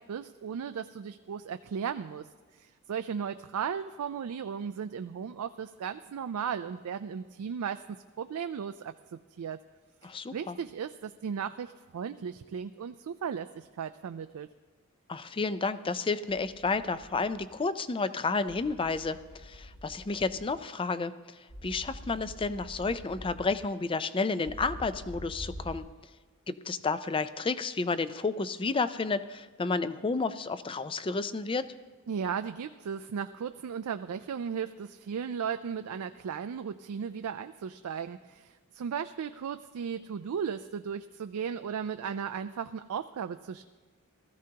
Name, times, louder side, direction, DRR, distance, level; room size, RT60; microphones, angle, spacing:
voice 1, 0.0-2.3 2.6-9.6 10.0-14.5 32.1-43.6, right 7 dB, 70° right, 9 dB, 0.4 m, -36 dB
voice 2, 10.0-10.6 15.1-21.1 21.6-25.8 26.5-31.6, left 4 dB, 25° left, 13 dB, 0.4 m, -31 dB
sound 1, 16.3-17.5 18.5-20.5 21.5-23.5 24.5-25.8, equal, 80° left, 2.8 m, -46 dB
19.0 x 14.0 x 2.9 m, 1.4 s
head